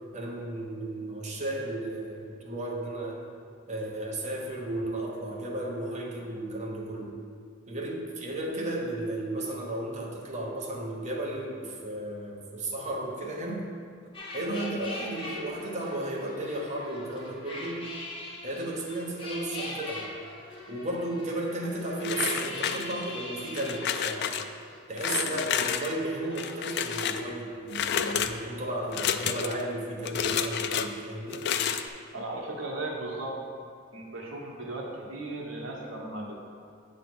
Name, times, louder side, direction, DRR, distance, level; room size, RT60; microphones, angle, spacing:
voice 1, 0.1-3.2 3.7-7.1 7.7-13.6 14.3-17.8 18.4-20.1 20.7-24.3 24.9-31.4, right 1 dB, 35° right, -2 dB, 1.0 m, -34 dB
sound 1, 14.1-25.3 25.6-26.9, left 1 dB, 25° left, 1.0 m, -42 dB
sound 2, 22.0-23.1 23.5-24.4 25.0-25.9 26.3-27.2 27.7-28.3 28.9-29.6 30.0-30.9 31.3-31.9, left 8 dB, 55° left, 0.3 m, -30 dB
voice 2, 32.1-33.4 33.9-36.3, right 2 dB, 70° right, -2 dB, 1.2 m, -36 dB
8.4 x 3.3 x 6.0 m, 2.3 s
head